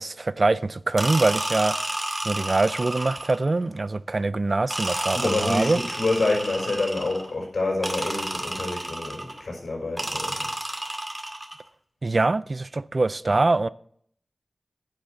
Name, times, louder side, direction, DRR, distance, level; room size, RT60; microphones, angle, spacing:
voice 1, 0.0-1.8 2.2-5.8 12.0-13.7, right 3 dB, 55° right, 0.4 m, -23 dB
sound 1, 1.0-3.5 4.7-7.3 7.8-9.4 10.0-11.6, right 1 dB, 25° right, 2.1 m, -31 dB
voice 2, 5.1-10.5 13.3-13.4, left 2 dB, 80° left, 5.5 m, -27 dB
10.0 x 6.3 x 7.0 m
wide cardioid pair, 50°, 0 cm